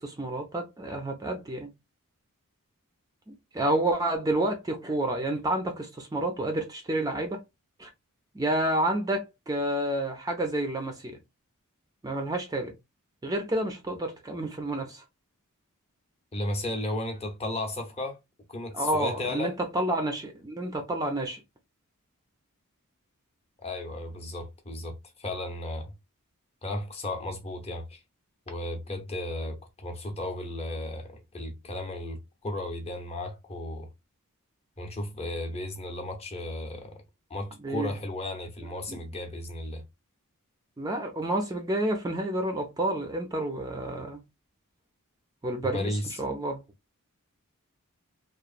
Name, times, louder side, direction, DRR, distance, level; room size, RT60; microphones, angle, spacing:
voice 1, 0.0-1.7 3.3-7.4 7.8-7.9 8.3-11.2 12.0-12.7 13.2-15.0 18.7-21.4 37.6-37.9 38.9-39.0 40.8-44.2 45.4-46.6, right 1 dB, 15° right, 0.4 m, -29 dB
voice 2, 16.3-18.2 18.5-19.6 23.6-25.9 26.6-28.0 28.5-33.9 34.8-37.0 37.3-39.8 45.6-46.2, left 1 dB, 30° left, 0.7 m, -34 dB
2.9 x 2.0 x 2.4 m
head